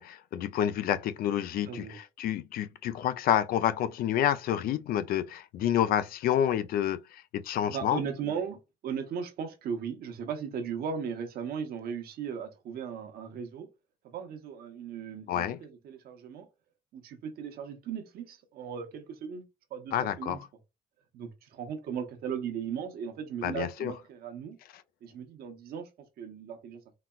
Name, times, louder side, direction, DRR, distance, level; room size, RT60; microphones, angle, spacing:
voice 1, 0.0-8.0 15.3-15.6 19.9-20.4 23.4-23.9, left 10 dB, 60° left, 0.4 m, -29 dB
voice 2, 1.7-2.0 7.6-13.7 14.0-16.5 16.9-19.4 19.7-20.4 21.1-24.6 25.0-26.8, right 7 dB, 65° right, 0.8 m, -37 dB
4.0 x 2.1 x 2.3 m
cardioid pair, 110°, 17 cm